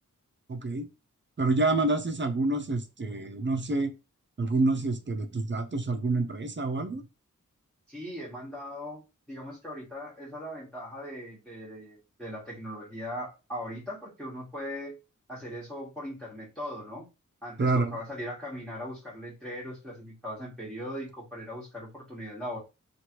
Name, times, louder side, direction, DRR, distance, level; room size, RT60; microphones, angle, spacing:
voice 1, 0.5-0.9 1.4-3.9 4.4-7.0 17.6-18.0, right 2 dB, 35° right, 6 dB, 0.5 m, -27 dB
voice 2, 7.9-9.0 9.3-14.9 15.3-17.1 17.4-22.6, equal, ahead, -6 dB, 1.2 m, -39 dB
3.0 x 2.5 x 2.9 m, 0.28 s
wide cardioid pair, 65°, 32 cm